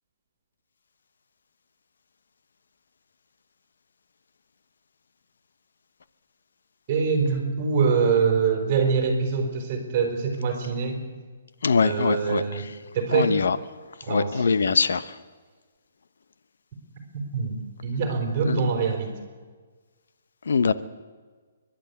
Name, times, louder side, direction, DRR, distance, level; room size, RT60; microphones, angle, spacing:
voice 1, 6.9-11.0 11.8-12.7 12.9-13.4 14.0-14.4 17.1-17.6 17.8-19.1, right 5 dB, 25° right, 3 dB, 4.7 m, -24 dB
voice 2, 11.6-12.6 13.1-13.6 14.1-15.2 18.5-18.7 20.5-20.7, left 5 dB, 80° left, 13 dB, 1.0 m, -23 dB
29.0 x 11.5 x 8.5 m, 1.5 s
hypercardioid pair, 170°, 0 cm